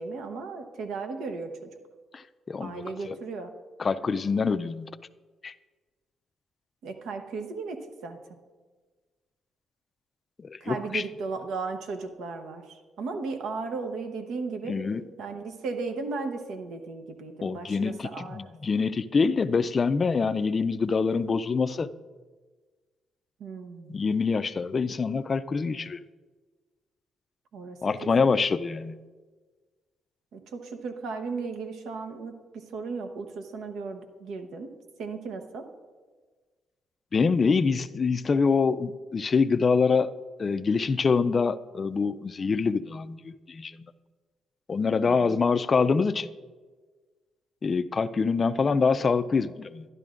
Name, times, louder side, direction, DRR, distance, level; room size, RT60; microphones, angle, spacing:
voice 1, 0.0-1.7 2.6-3.5 6.8-8.2 10.6-14.8 15.2-18.5 23.4-23.9 27.5-28.3 30.3-34.7 35.0-35.7 45.0-45.4, right 4 dB, 80° right, 6 dB, 0.9 m, -36 dB
voice 2, 2.1-3.2 3.8-4.9 5.4-5.5 10.4-11.0 14.6-15.0 17.4-21.9 23.9-26.0 27.8-29.0 37.1-40.1 40.4-43.9 44.7-46.3 47.6-49.9, left 5 dB, 40° left, 13 dB, 0.4 m, -25 dB
12.0 x 10.5 x 2.5 m, 1.4 s
cardioid pair, 90°, 0 cm